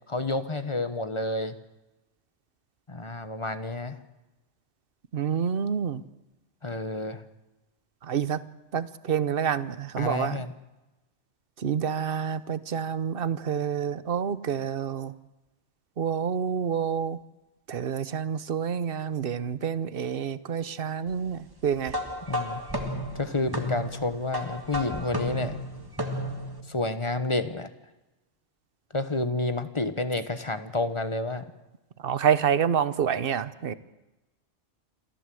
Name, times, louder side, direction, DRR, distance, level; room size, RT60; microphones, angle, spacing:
voice 1, 0.1-1.6 2.9-4.0 6.6-7.2 10.0-10.5 22.3-22.6 23.1-25.6 26.7-27.7 28.9-31.5, left 2 dB, 25° left, 10 dB, 1.1 m, -29 dB
voice 2, 5.1-6.0 8.0-8.4 8.7-10.4 11.6-15.1 16.0-17.2 17.7-22.0 32.0-33.7, right 7 dB, 55° right, 15 dB, 1.0 m, -28 dB
sound 1, 21.9-26.6, equal, 20° right, 1.9 m, -33 dB
27.5 x 14.5 x 7.7 m, 1.1 s
omnidirectional pair, 1.2 m